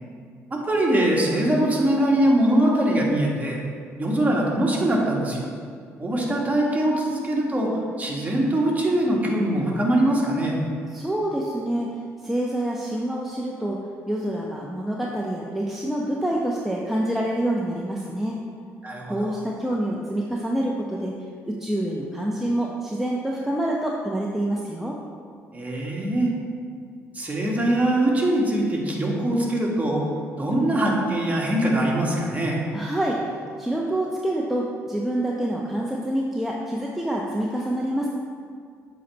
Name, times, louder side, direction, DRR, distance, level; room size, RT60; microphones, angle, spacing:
voice 1, 0.5-3.6 4.0-5.4 6.0-7.7 8.0-10.6 18.8-19.3 25.5-26.3 27.1-30.0 30.4-32.6, right 1 dB, 25° right, -2 dB, 1.7 m, -22 dB
voice 2, 10.9-11.9 12.2-13.8 14.1-18.4 19.1-21.1 21.5-25.0 32.7-38.1, right 1 dB, 5° right, -3 dB, 0.8 m, -27 dB
7.5 x 4.1 x 4.5 m, 2.2 s
hypercardioid pair, 60°, 7 cm